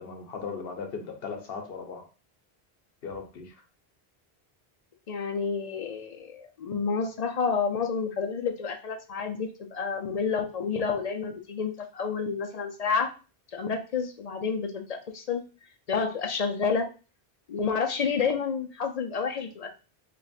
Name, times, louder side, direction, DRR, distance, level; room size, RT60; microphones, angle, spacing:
voice 1, 0.0-2.1 3.0-3.6, left 5 dB, 70° left, 5 dB, 1.0 m, -37 dB
voice 2, 5.1-13.1 13.5-15.4 15.9-16.9 17.5-19.7, left 5 dB, 50° left, 5 dB, 0.5 m, -29 dB
3.0 x 2.5 x 4.0 m, 0.34 s
omnidirectional pair, 1.0 m